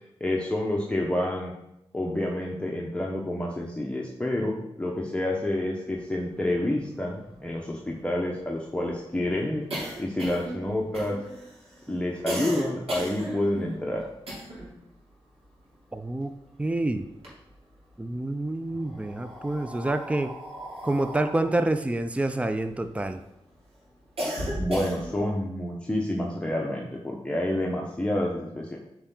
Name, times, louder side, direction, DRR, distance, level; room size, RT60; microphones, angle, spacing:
voice 1, 0.2-1.5 1.9-9.7 10.0-11.2 11.9-14.0 24.6-28.8, left 1 dB, 10° left, -2 dB, 1.0 m, -28 dB
sound 1, 6.6-6.7 6.9-7.0 7.3-14.8 15.1-16.6 17.0-17.9 18.7-23.2 23.6-25.3, right 1 dB, 75° right, 2.9 m, -36 dB
voice 2, 15.9-16.3 16.6-17.1 18.0-20.3 20.8-23.2, right 2 dB, 10° right, 9 dB, 0.5 m, -27 dB
8.7 x 4.6 x 3.9 m, 0.86 s
cardioid pair, 60°, 10 cm